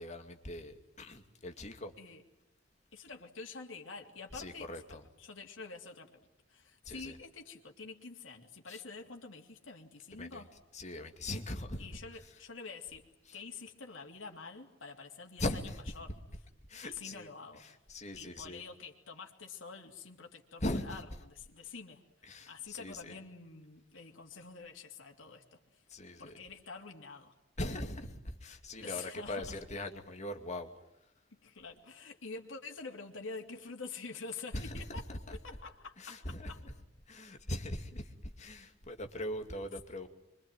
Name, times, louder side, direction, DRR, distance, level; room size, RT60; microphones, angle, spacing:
voice 1, 0.0-1.9 4.3-5.0 6.8-7.2 8.7-8.8 10.1-10.5 10.7-11.9 15.4-15.8 16.1-16.2 16.7-17.3 17.6-18.6 20.6-21.0 22.2-23.2 25.9-26.3 27.6-30.7 34.5-35.4 36.0-36.7 37.1-40.1, left 1 dB, 35° left, 5 dB, 2.5 m, -40 dB
voice 2, 2.9-4.7 5.2-6.2 6.5-10.5 11.8-13.0 13.3-16.1 16.8-17.6 18.1-21.0 21.3-22.0 22.5-25.6 26.2-27.3 28.8-29.6 31.4-35.0 35.3-36.6, left 4 dB, 80° left, 1 dB, 3.0 m, -47 dB
26.0 x 24.5 x 9.2 m, 0.83 s
head